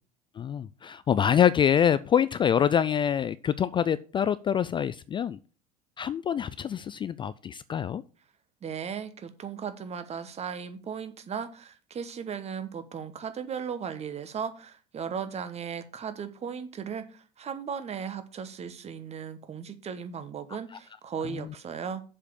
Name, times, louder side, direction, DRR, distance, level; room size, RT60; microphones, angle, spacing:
voice 1, 0.4-5.4 6.0-8.0 21.3-21.5, left 9 dB, 25° left, 16 dB, 0.3 m, -25 dB
voice 2, 8.6-22.0, right 7 dB, 30° right, 11 dB, 1.2 m, -36 dB
7.3 x 5.0 x 7.0 m, 0.38 s
figure-of-eight pair, 70°, 21 cm